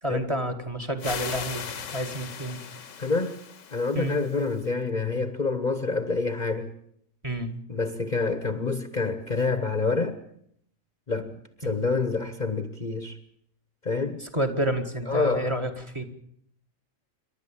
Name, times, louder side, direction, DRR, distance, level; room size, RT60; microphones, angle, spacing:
voice 1, 0.0-1.6 1.9-2.6 3.9-4.2 7.2-7.5 11.6-11.7 14.2-16.1, right 1 dB, 20° right, 1.9 m, -29 dB
sound 1, 1.0-4.7, left 7 dB, 70° left, 1.5 m, -38 dB
voice 2, 3.0-3.3 3.7-6.7 7.7-10.2 11.1-13.2 13.8-14.2 15.1-15.5, left 3 dB, 35° left, 1.2 m, -27 dB
28.0 x 12.0 x 8.7 m
omnidirectional pair, 1.4 m